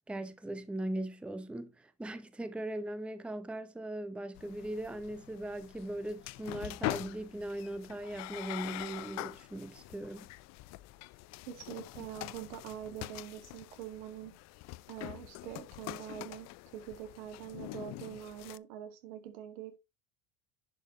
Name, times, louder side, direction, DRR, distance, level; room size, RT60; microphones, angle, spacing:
voice 1, 0.1-10.3, right 1 dB, 5° right, 0.7 m, -39 dB
sound 1, 4.3-18.6, left 19 dB, 50° left, 0.5 m, -44 dB
voice 2, 11.5-14.3 14.9-19.8, right 10 dB, 80° right, 1.8 m, -44 dB
10.5 x 4.9 x 3.0 m
supercardioid pair, 105°, 34 cm